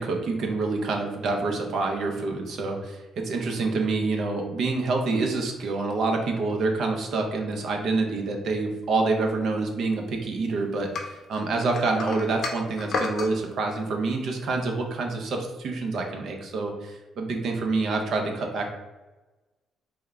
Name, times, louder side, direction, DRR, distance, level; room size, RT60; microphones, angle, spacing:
voice 1, 0.0-18.7, right 3 dB, 70° right, 2 dB, 0.6 m, -27 dB
sound 1, 10.9-13.3, left 4 dB, 65° left, 0.5 m, -31 dB
3.4 x 2.2 x 3.4 m, 1.1 s
cardioid pair, 90°, 0 cm